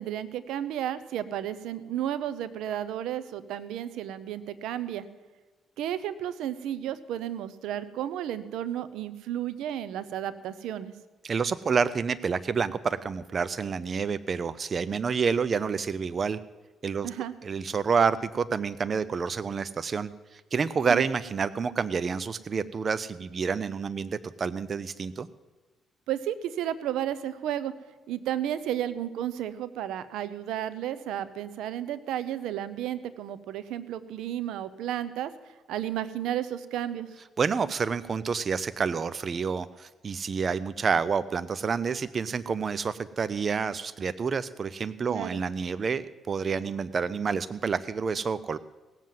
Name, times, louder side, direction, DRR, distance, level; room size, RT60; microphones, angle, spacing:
voice 1, 0.0-5.1 5.8-10.9 17.0-17.3 20.9-21.0 26.1-27.7 28.1-35.3 35.7-37.1 45.1-45.4, right 11 dB, 90° right, 15 dB, 0.8 m, -32 dB
voice 2, 11.2-16.4 16.8-17.1 17.4-25.3 37.4-48.6, right 5 dB, 45° right, 16 dB, 0.5 m, -28 dB
18.5 x 7.5 x 7.6 m, 1.2 s
cardioid pair, 90°, 0 cm